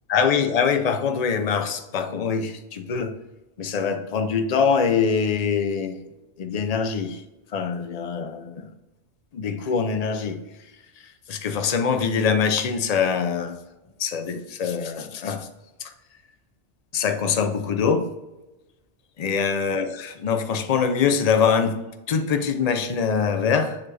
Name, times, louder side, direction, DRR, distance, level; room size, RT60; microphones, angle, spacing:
voice 1, 0.1-3.1 3.6-6.0 6.4-7.2 7.5-8.7 9.3-10.4 11.3-13.6 14.0-15.5 15.8-15.9 16.9-18.1 19.2-21.8 22.1-23.8, left 6 dB, 45° left, 0.5 m, -23 dB
7.4 x 4.2 x 3.2 m
omnidirectional pair, 1.2 m